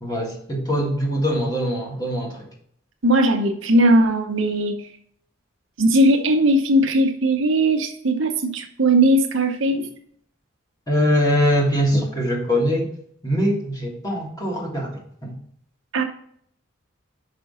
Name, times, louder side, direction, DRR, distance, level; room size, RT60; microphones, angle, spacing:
voice 1, 0.0-2.5 10.9-12.9 13.2-15.4, equal, 20° left, -1 dB, 1.6 m, -22 dB
voice 2, 3.0-4.8 5.8-9.9 15.9-16.0, right 1 dB, 75° right, 4 dB, 0.8 m, -18 dB
5.7 x 5.2 x 5.5 m, 0.65 s
head